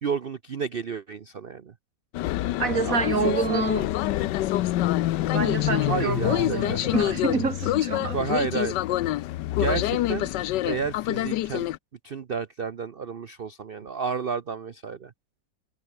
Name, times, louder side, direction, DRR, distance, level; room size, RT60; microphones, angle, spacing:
voice 1, 0.0-1.7 2.6-3.7 5.7-7.1 8.1-8.8 9.6-10.3 10.6-11.7 12.0-15.1, right 6 dB, 85° right, 0.5 m, -31 dB
sound 1, 2.1-11.8, left 15 dB, 75° left, 1.2 m, -26 dB
voice 2, 2.6-3.9 5.3-8.2, right 5 dB, 45° right, 2.7 m, -27 dB
omnidirectional pair, 2.1 m